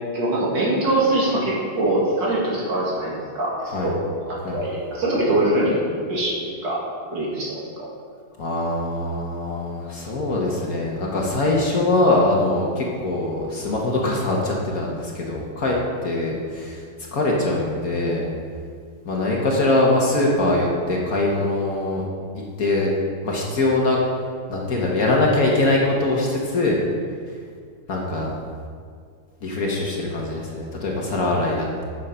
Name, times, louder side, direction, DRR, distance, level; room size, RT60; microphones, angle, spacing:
voice 1, 0.1-4.0 4.3-5.8 6.1-6.8 7.1-7.9, right 1 dB, 65° right, -5 dB, 2.7 m, -23 dB
voice 2, 8.4-15.8 16.0-16.8 17.1-18.3 19.0-22.0 22.3-22.9 23.2-24.0 24.5-26.8 27.9-28.3 29.4-31.8, left 2 dB, 50° left, -2 dB, 1.5 m, -22 dB
8.2 x 6.5 x 5.6 m, 2.1 s
omnidirectional pair, 2.1 m